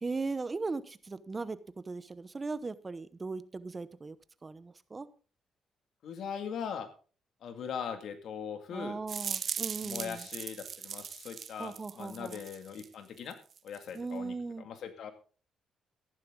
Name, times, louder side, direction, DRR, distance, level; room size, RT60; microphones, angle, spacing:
voice 1, 0.0-4.2 4.4-5.1 8.7-10.3 11.6-12.4 13.9-14.7, right 3 dB, 25° right, 15 dB, 1.0 m, -38 dB
voice 2, 6.0-6.9 7.4-9.0 9.8-13.4 13.6-15.1, left 7 dB, 70° left, 8 dB, 2.1 m, -40 dB
sound 1, 9.1-12.9 13.2-14.0, right 7 dB, 50° right, 0.7 m, -39 dB
14.0 x 11.0 x 3.8 m, 0.38 s
cardioid pair, 90°, 0 cm